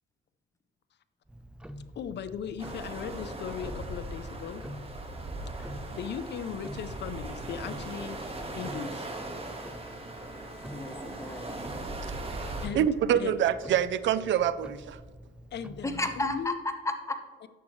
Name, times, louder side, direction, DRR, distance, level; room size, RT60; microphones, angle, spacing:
Tick-tock, 1.3-16.5, equal, 5° right, 0.5 m, -47 dB
voice 1, 2.0-4.6 5.6-8.2 8.5-9.1 12.6-12.9 13.1-13.3 15.5-16.6 17.4-17.5, left 8 dB, 60° left, 0.5 m, -38 dB
sound 1, 2.6-12.7, right 2 dB, 30° right, 1.6 m, -39 dB
Bowed string instrument, 8.3-12.3, left 1 dB, 80° left, 1.5 m, -53 dB
voice 2, 10.7-11.5 15.8-17.3, left 2 dB, 15° left, 1.2 m, -33 dB
voice 3, 12.3-15.0, right 9 dB, 70° right, 0.5 m, -26 dB
11.5 x 7.6 x 3.2 m
cardioid pair, 90°, 20 cm